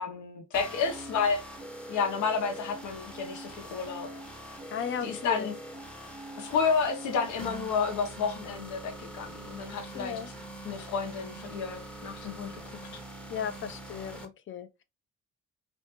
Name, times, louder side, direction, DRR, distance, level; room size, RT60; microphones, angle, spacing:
voice 1, 0.0-1.4 1.9-4.1 5.0-5.5 6.4-10.2 10.6-12.5, left 5 dB, 75° left, 0.7 m, -31 dB
sound 1, 0.5-14.2, right 1 dB, 5° left, 0.6 m, -43 dB
voice 2, 4.7-5.5 9.9-10.3 13.3-14.8, left 7 dB, 40° left, 0.5 m, -35 dB
2.5 x 2.1 x 2.9 m
cardioid pair, 90°, 30 cm